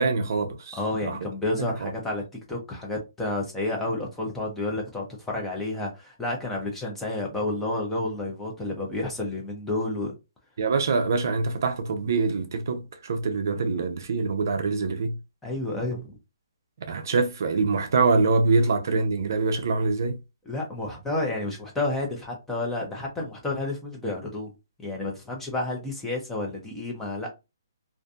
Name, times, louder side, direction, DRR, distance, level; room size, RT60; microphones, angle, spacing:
voice 1, 0.0-0.8 1.1-1.2 1.6-1.9 10.6-15.2 16.9-20.2, right 4 dB, 50° right, 0.5 m, -24 dB
voice 2, 0.7-10.2 15.4-16.2 20.5-24.5 24.8-27.3, left 2 dB, 5° left, 0.5 m, -30 dB
2.5 x 2.5 x 2.3 m
hypercardioid pair, 170°, 2 cm